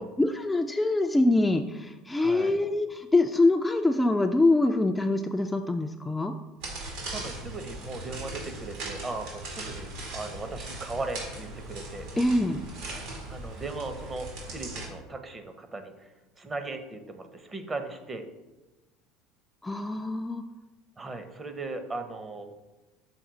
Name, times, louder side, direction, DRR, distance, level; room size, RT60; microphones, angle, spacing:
voice 1, 0.2-6.3 12.2-12.6 19.6-20.4, left 2 dB, 10° left, 5 dB, 0.3 m, -24 dB
voice 2, 2.2-2.6 7.0-12.1 13.3-16.1 16.4-18.2 21.0-22.5, right 3 dB, 25° right, 8 dB, 0.8 m, -38 dB
sound 1, 6.6-14.9, right 2 dB, 75° right, 2.0 m, -39 dB
6.0 x 4.2 x 3.9 m, 1.1 s
hypercardioid pair, 90°, 0 cm